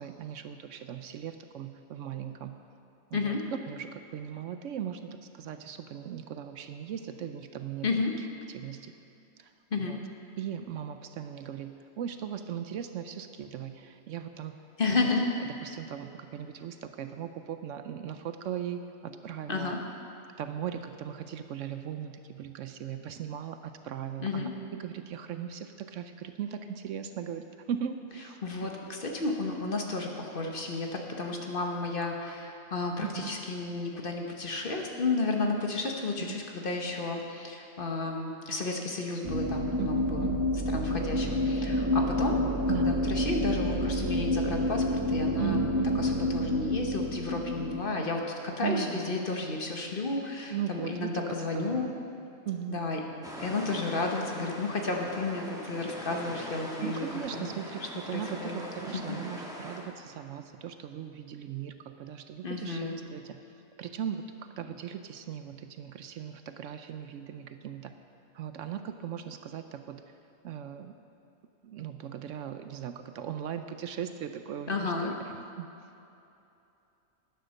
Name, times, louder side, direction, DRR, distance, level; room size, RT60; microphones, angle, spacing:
voice 1, 0.0-2.6 3.1-3.3 3.7-7.9 8.5-8.9 9.4-9.5 9.8-10.0 10.4-14.6 14.9-15.0 15.6-19.8 20.4-28.4 33.0-33.3 36.3-36.4 39.8-40.4 42.7-43.0 45.4-46.0 48.0-48.1 48.6-49.1 50.5-51.9 52.5-52.8 56.8-63.4 63.8-64.2 64.6-67.9 68.3-70.0 70.4-70.9 71.6-74.9 75.6-75.7, right 9 dB, 70° right, 8 dB, 0.9 m, -38 dB
voice 2, 7.8-8.1 9.7-10.0 14.8-15.3 19.5-19.8 24.2-24.5 28.4-40.3 40.7-42.4 42.8-45.7 46.0-51.9 52.7-53.0 53.4-57.0 57.3-57.5 58.1-58.6 58.9-59.2 62.4-63.0 74.7-75.1, left 3 dB, 45° left, 2 dB, 1.2 m, -32 dB
sound 1, 39.2-47.8, left 1 dB, 30° right, 0.4 m, -28 dB
sound 2, 53.2-59.8, equal, 5° right, 1.5 m, -42 dB
11.5 x 9.4 x 6.4 m, 2.8 s
omnidirectional pair, 1.4 m